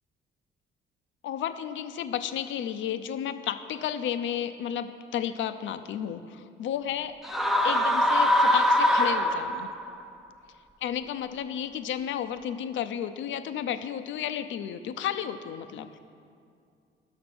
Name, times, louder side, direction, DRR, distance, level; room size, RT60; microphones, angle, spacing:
voice 1, 1.2-7.2 7.6-9.7 10.8-15.9, left 9 dB, 75° left, 10 dB, 0.6 m, -32 dB
sound 1, 7.2-9.9, left 1 dB, ahead, 0.6 m, -23 dB
11.5 x 6.5 x 6.1 m, 2.3 s
cardioid pair, 90°, 20 cm